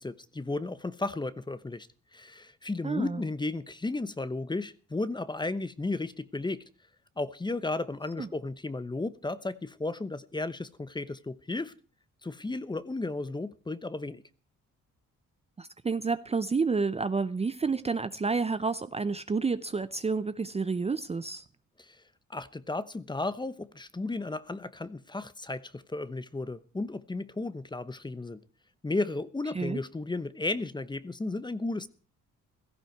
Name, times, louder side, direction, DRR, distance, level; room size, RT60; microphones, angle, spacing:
voice 1, 0.0-6.7 7.2-11.7 12.2-14.2 21.8-22.0 22.3-28.4 28.8-31.9, left 2 dB, 15° left, 0.9 m, -34 dB
voice 2, 2.8-3.2 8.2-8.3 15.6-21.4 29.5-29.8, right 4 dB, 20° right, 0.6 m, -30 dB
16.5 x 14.0 x 4.6 m
cardioid pair, 90°, 30 cm